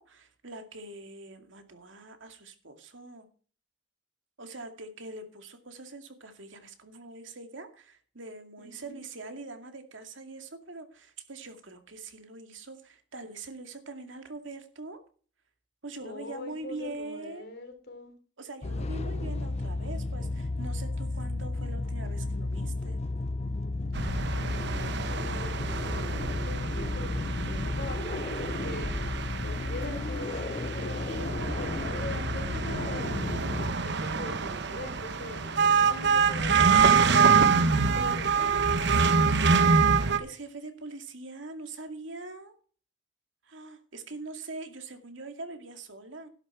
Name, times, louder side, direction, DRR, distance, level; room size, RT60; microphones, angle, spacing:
voice 1, 0.0-3.3 4.4-15.0 15.8-17.5 18.4-23.0 37.6-38.2 39.9-42.5 43.4-46.3, right 2 dB, 85° right, 6 dB, 2.3 m, -43 dB
voice 2, 8.6-9.0 16.0-18.1 23.9-29.0 29.4-33.2 33.8-36.9 37.9-38.6, left 2 dB, 60° left, 5 dB, 3.5 m, -42 dB
sound 1, 18.6-33.7, left 2 dB, 35° left, 0.5 m, -33 dB
sound 2, 23.9-40.2, right 5 dB, 65° right, 1.0 m, -26 dB
11.5 x 10.5 x 4.5 m, 0.41 s
head